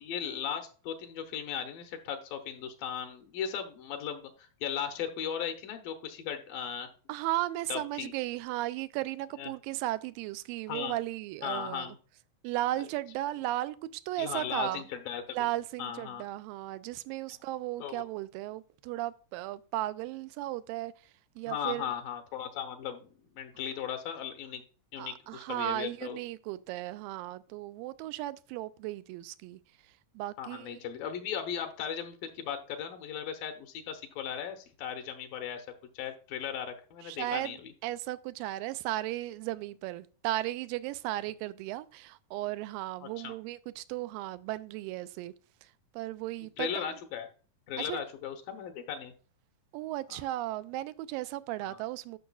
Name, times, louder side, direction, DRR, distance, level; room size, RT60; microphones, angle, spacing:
voice 1, 0.0-6.9 7.7-8.1 9.4-9.5 10.7-11.0 11.4-12.0 12.8-12.9 14.2-15.4 15.8-16.3 17.3-17.4 17.8-18.0 21.5-24.6 24.9-26.2 30.4-35.7 35.9-37.7 43.0-43.3 46.6-47.3 47.7-49.1 50.1-50.2 51.6-51.8, left 8 dB, 85° left, 2.6 m, -37 dB
voice 2, 7.1-11.9 12.4-14.8 15.3-20.9 21.4-21.9 25.0-29.6 30.2-30.8 37.1-45.3 46.0-46.8 47.9-48.0 49.7-52.2, right 15 dB, 85° right, 2.3 m, -35 dB
12.0 x 6.0 x 2.3 m
omnidirectional pair, 3.9 m